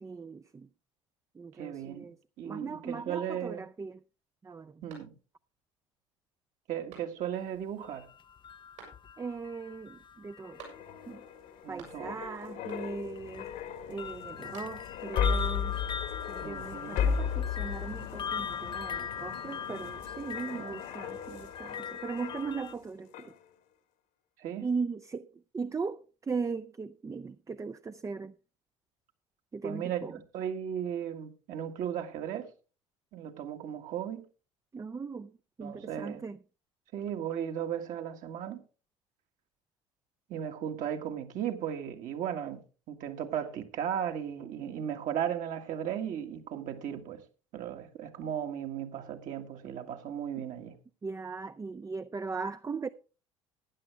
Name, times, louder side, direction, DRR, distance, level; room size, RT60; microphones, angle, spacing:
voice 1, 0.0-0.7 1.3-2.2 2.4-4.0 4.4-4.8 9.2-10.6 11.1-11.2 11.7-13.5 13.9-15.8 16.3-23.3 24.6-28.3 29.5-30.2 34.7-36.4 50.4-50.5 51.0-52.9, right 4 dB, 20° right, 0.5 m, -38 dB
voice 2, 1.6-2.1 2.4-3.6 4.8-5.1 6.7-8.1 11.6-12.2 16.4-17.1 20.5-20.8 24.4-24.7 29.6-32.5 33.1-34.2 35.6-36.2 36.9-38.6 40.3-42.6 42.9-47.2 47.5-50.8, right 9 dB, 55° right, 1.7 m, -36 dB
sound 1, 4.9-5.6 6.0-6.1 6.9-7.5 8.8-9.4 10.6-11.2 11.4-12.3 12.7-13.2 14.2-15.1, right 6 dB, 75° right, 6.1 m, -53 dB
sound 2, 7.8-11.0 11.9-12.1 12.9-22.7, left 7 dB, 30° left, 0.6 m, -40 dB
sound 3, 10.4-22.8 23.1-23.4, left 7 dB, 60° left, 1.5 m, -36 dB
15.0 x 9.9 x 3.3 m
hypercardioid pair, 60°, 16 cm